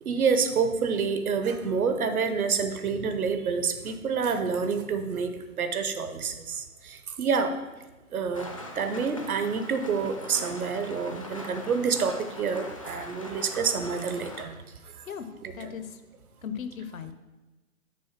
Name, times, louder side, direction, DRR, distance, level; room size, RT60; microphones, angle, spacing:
voice 1, 0.0-7.5 8.1-8.5 8.8-14.5 15.0-15.1 15.4-15.7, right 5 dB, 75° right, 8 dB, 0.9 m, -28 dB
Rain, 8.3-14.4, left 1 dB, 25° left, 0.4 m, -42 dB
voice 2, 15.5-16.0 16.4-17.1, left 7 dB, 65° left, 10 dB, 0.8 m, -37 dB
6.2 x 3.8 x 5.9 m, 1.1 s
hypercardioid pair, 145°, 44 cm